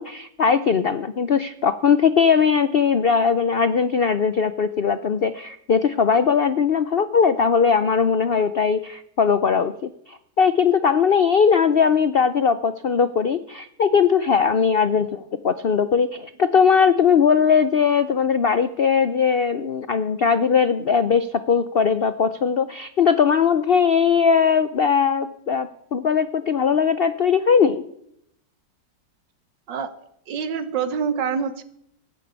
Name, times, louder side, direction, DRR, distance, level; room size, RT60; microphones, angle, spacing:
voice 1, 0.0-27.8, left 6 dB, 85° left, 12 dB, 0.5 m, -19 dB
voice 2, 30.3-31.6, right 6 dB, 80° right, 11 dB, 1.8 m, -26 dB
17.5 x 9.3 x 8.2 m, 0.74 s
omnidirectional pair, 2.0 m